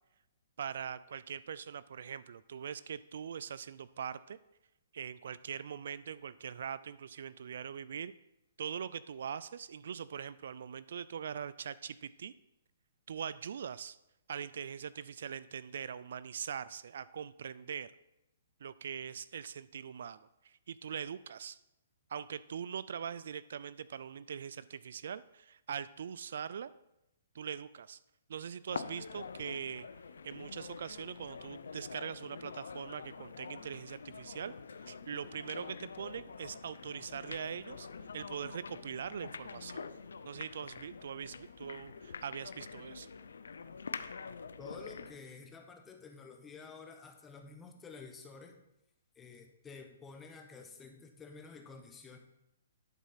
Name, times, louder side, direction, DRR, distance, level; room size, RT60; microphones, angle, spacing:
voice 1, 0.6-4.4 4.9-8.1 8.6-12.3 13.1-14.0 14.3-17.9 18.6-21.6 22.1-26.7 27.3-28.0 28.3-29.9 30.2-34.5 34.8-37.9 38.1-39.9 40.3-43.1, right 7 dB, 65° right, 17 dB, 0.3 m, -42 dB
sound 1, 28.7-45.2, left 5 dB, 85° left, 0.5 m, -46 dB
voice 2, 44.6-48.6 49.2-52.2, left 4 dB, 15° left, 4 dB, 1.0 m, -51 dB
11.0 x 4.1 x 5.6 m, 0.88 s
hypercardioid pair, 145°, 0 cm